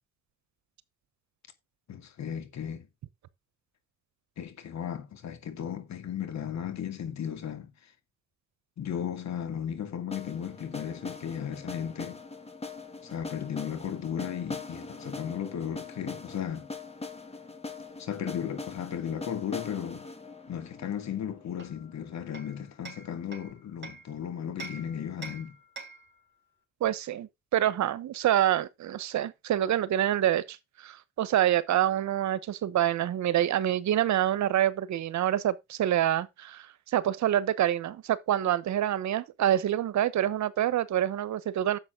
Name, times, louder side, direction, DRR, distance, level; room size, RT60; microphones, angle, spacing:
voice 1, 1.9-2.9 4.4-7.7 8.8-12.2 13.0-16.7 18.0-20.0 20.5-25.5, left 8 dB, 65° left, 2.4 m, -35 dB
sound 1, 10.1-22.0, left 3 dB, 20° left, 2.3 m, -42 dB
Hammer, 21.6-24.1 24.6-26.2, right 3 dB, 35° right, 3.5 m, -45 dB
voice 2, 26.8-30.6 30.8-36.7 36.9-41.8, right 11 dB, 70° right, 1.1 m, -26 dB
10.5 x 7.3 x 3.8 m
cardioid pair, 90°, 30 cm